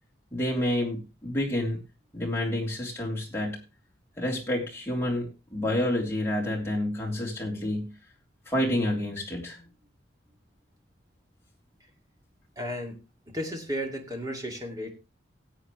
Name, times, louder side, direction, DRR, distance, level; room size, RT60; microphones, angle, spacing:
voice 1, 0.3-1.8 2.1-3.6 4.2-7.9 8.5-9.6, left 1 dB, 15° left, -2 dB, 3.3 m, -29 dB
voice 2, 12.6-13.0 13.3-14.9, equal, 20° right, 2 dB, 2.3 m, -34 dB
17.0 x 8.3 x 3.2 m, 0.28 s
head